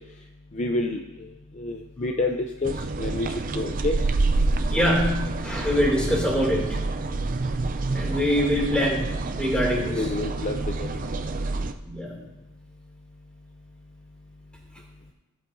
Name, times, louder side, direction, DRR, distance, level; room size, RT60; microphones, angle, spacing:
voice 1, 0.5-1.3 1.6-4.0 9.9-10.9, left 2 dB, 30° left, 5 dB, 0.4 m, -28 dB
sound 1, 2.6-11.7, right 3 dB, 40° right, 0.4 m, -27 dB
voice 2, 4.7-6.7 7.9-9.1 9.4-10.0 11.9-12.1, equal, 5° left, -3 dB, 2.5 m, -24 dB
16.5 x 8.6 x 2.7 m, 0.98 s
head